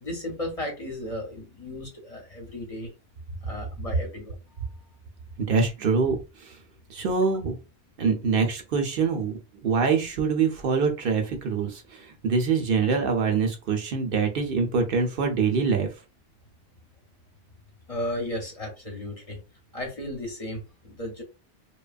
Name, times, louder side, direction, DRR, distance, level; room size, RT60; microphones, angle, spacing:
voice 1, 0.0-2.9 3.4-4.8 17.9-19.4 19.7-21.2, left 1 dB, 40° left, 0 dB, 0.8 m, -35 dB
voice 2, 5.4-6.6 6.9-7.6 8.0-9.3 9.6-15.9, right 5 dB, 65° right, 4 dB, 0.7 m, -24 dB
2.8 x 2.2 x 2.4 m, 0.29 s
omnidirectional pair, 1.1 m